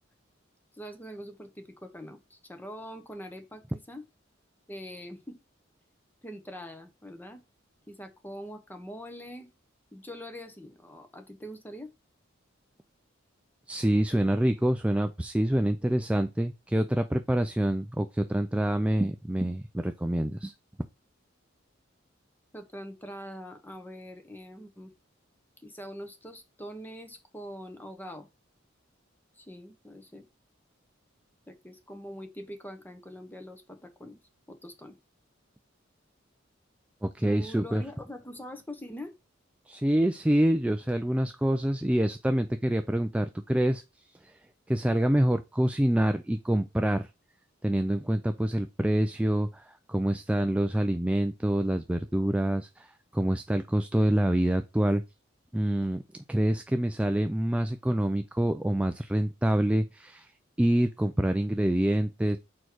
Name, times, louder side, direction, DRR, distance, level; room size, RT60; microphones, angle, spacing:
voice 1, 0.7-4.0 4.7-5.4 6.2-7.4 7.9-9.5 9.9-11.9 22.5-24.9 25.6-28.3 29.3-30.2 31.5-34.2 34.5-35.0 37.2-39.1, equal, 10° left, 1.0 m, -43 dB
voice 2, 13.7-20.5 37.0-37.8 39.7-43.8 44.2-44.4 44.7-47.1 47.6-55.0 55.5-56.0 56.3-60.3 60.6-62.4, right 1 dB, 5° right, 0.3 m, -26 dB
4.7 x 4.4 x 4.5 m
head